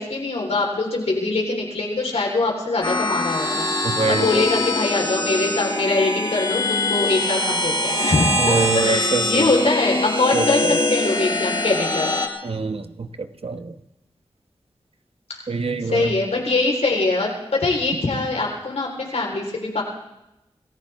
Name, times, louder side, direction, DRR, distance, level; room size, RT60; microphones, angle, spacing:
voice 1, 0.0-12.1 15.3-15.4 15.8-19.8, left 3 dB, 85° left, 0 dB, 4.0 m, -23 dB
sound 1, 2.8-12.3, left 1 dB, 50° left, 2.3 m, -23 dB
voice 2, 3.8-4.4 8.4-9.5 10.3-10.8 12.4-13.7 15.5-16.1, right 3 dB, 65° right, 9 dB, 1.1 m, -25 dB
26.5 x 15.0 x 3.5 m, 0.90 s
cardioid pair, 50°, 11 cm